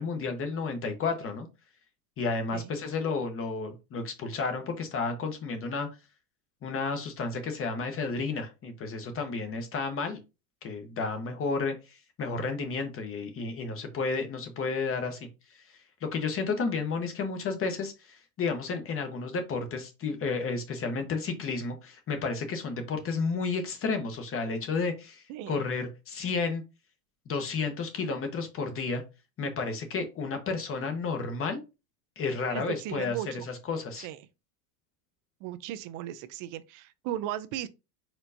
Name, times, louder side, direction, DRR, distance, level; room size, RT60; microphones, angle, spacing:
voice 1, 0.0-1.5 2.2-5.9 6.6-10.2 10.6-15.6 16.0-26.6 27.3-29.0 29.4-31.6 32.2-33.2 33.4-34.1, left 4 dB, 30° left, 1.0 m, -32 dB
voice 2, 25.3-25.6 32.5-33.4 34.0-34.2 35.4-37.7, right 12 dB, 45° right, 0.6 m, -36 dB
4.5 x 3.9 x 2.7 m
supercardioid pair, 130°, 45 cm